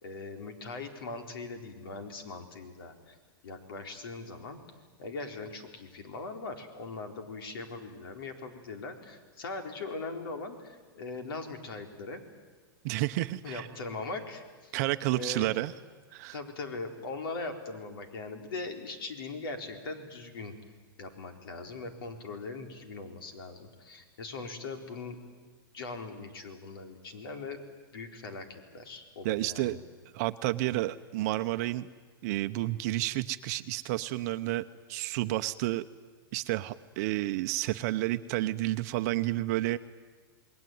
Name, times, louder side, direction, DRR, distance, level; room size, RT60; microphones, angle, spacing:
voice 1, 0.0-3.2 3.4-4.6 5.0-12.2 13.4-14.7 15.1-15.5 16.3-20.5 21.0-25.2 25.7-27.6 27.9-29.8, left 3 dB, 75° left, 6 dB, 4.3 m, -40 dB
voice 2, 12.8-13.7 14.7-15.7 16.1-16.4 29.2-29.8 30.1-31.9 32.2-35.8 36.3-39.8, right 17 dB, 45° right, 10 dB, 0.8 m, -30 dB
28.0 x 21.0 x 9.4 m, 1.4 s
supercardioid pair, 155°, 12 cm